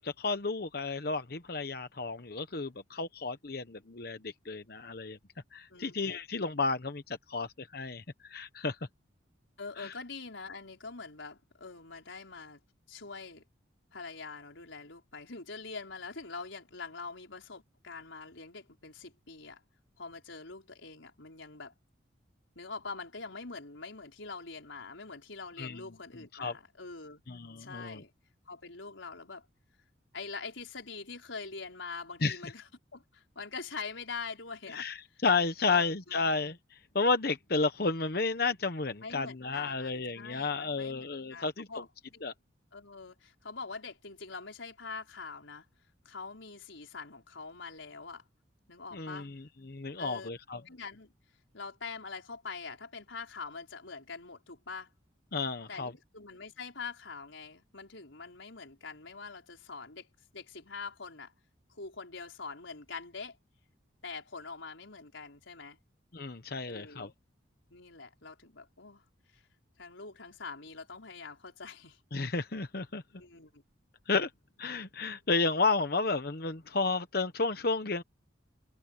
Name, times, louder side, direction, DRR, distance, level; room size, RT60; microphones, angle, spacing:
voice 1, 0.0-5.2 5.5-8.8 9.8-9.9 25.6-25.8 26.3-26.5 27.3-28.0 32.2-32.4 34.7-41.7 42.2-42.3 48.9-50.6 55.3-55.9 66.1-67.1 72.1-73.0 74.1-74.3 74.6-78.0, left 3 dB, 50° left, 1.0 m, -32 dB
voice 2, 9.6-12.6 12.9-13.4 13.9-19.6 20.0-21.7 22.5-27.2 27.6-28.1 28.5-29.4 30.1-34.9 35.7-36.2 39.0-41.9 42.1-42.2 42.7-45.6 46.0-48.2 48.7-49.3 50.0-50.3 50.6-51.1 51.5-54.9 55.7-60.1 60.3-61.3 61.7-63.4 64.0-65.8 66.7-67.1 67.7-69.0 69.3-69.4 69.8-72.0 73.1-73.6, left 4 dB, 85° left, 4.9 m, -44 dB
head